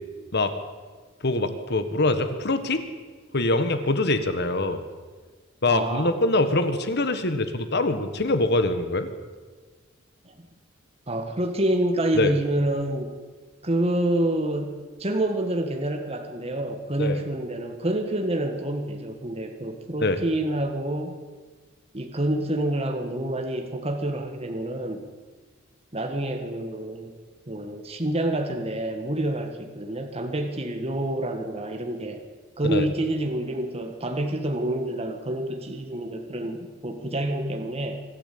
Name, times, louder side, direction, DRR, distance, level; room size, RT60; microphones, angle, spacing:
voice 1, 1.2-2.8 3.3-4.8 5.6-9.1 12.1-12.3 17.0-17.2 20.0-20.2 32.6-32.9, left 2 dB, 55° left, 9 dB, 1.6 m, -24 dB
voice 2, 5.7-6.1 10.2-10.3 11.1-13.1 13.6-21.2 21.9-25.1 25.9-27.1 27.5-32.2 32.6-38.0, right 1 dB, 30° right, 4 dB, 1.7 m, -27 dB
25.0 x 13.5 x 8.7 m, 1.4 s
head